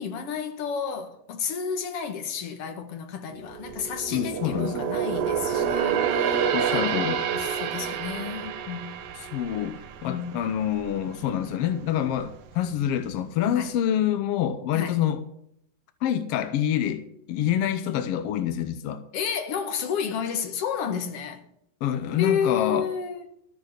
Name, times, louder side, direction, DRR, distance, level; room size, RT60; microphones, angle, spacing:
voice 1, 0.0-9.0 10.0-10.4 13.5-13.7 14.7-15.0 19.1-21.4 22.2-23.2, left 7 dB, 55° left, 2.1 m, -31 dB
sound 1, 3.4-10.9 11.3-11.5 12.1-12.8 13.1-13.2, right 7 dB, 85° right, 2.7 m, -28 dB
voice 2, 4.1-4.8 6.5-7.2 9.3-15.2 16.0-19.0 21.8-22.9, left 10 dB, 80° left, 1.3 m, -26 dB
13.0 x 9.1 x 6.5 m
omnidirectional pair, 3.8 m